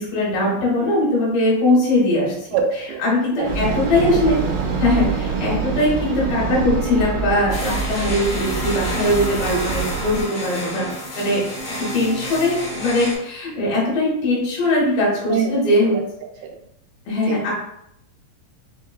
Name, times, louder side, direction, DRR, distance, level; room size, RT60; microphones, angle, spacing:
voice 1, 0.0-2.3 3.0-4.4 4.8-10.9 11.2-11.4 11.8-16.0 17.1-17.5, left 1 dB, 75° left, -6 dB, 2.9 m, -20 dB
voice 2, 2.5-3.1 3.4-3.8 4.1-4.2 15.3-15.5 15.9-16.0 16.4-16.6 17.3-17.4, right 6 dB, 85° right, 2 dB, 2.3 m, -24 dB
sound 1, 3.4-10.2, right 5 dB, 70° right, 2.0 m, -25 dB
sound 2, 7.5-13.2, left 1 dB, 45° left, 1.8 m, -30 dB
6.1 x 2.2 x 2.3 m, 0.77 s
omnidirectional pair, 3.9 m